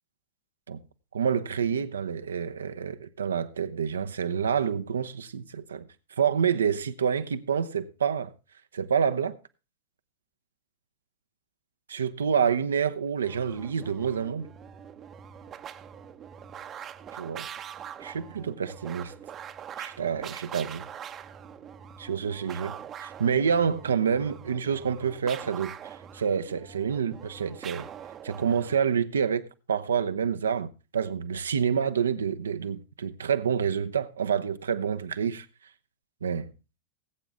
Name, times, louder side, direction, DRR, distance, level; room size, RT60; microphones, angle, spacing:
voice 1, 1.1-5.9 6.2-8.3 8.7-9.4 11.9-14.5 17.2-17.5 18.0-19.1 19.8-20.8 22.0-27.9 28.2-35.5 36.2-36.5, right 7 dB, 70° right, 0.7 m, -28 dB
sound 1, 13.2-28.9, right 8 dB, 25° right, 0.8 m, -43 dB
19.5 x 8.1 x 3.6 m
figure-of-eight pair, 90°, 0 cm